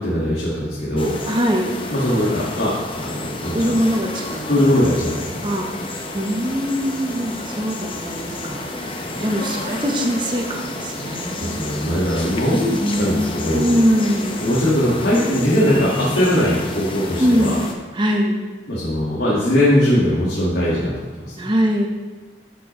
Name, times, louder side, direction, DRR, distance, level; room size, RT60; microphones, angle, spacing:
voice 1, 0.0-1.2 1.9-3.6 4.5-5.4 8.9-9.2 11.4-13.7 14.4-17.6 18.7-21.3, left 1 dB, 80° left, -7 dB, 1.8 m, -20 dB
sound 1, 1.0-17.7, left 2 dB, 30° left, 0.7 m, -30 dB
voice 2, 1.3-1.8 3.5-4.5 5.4-12.0 12.8-14.4 17.2-17.6 17.9-18.4 21.4-21.9, equal, 25° right, 2 dB, 0.9 m, -22 dB
11.0 x 5.5 x 3.1 m, 1.2 s
head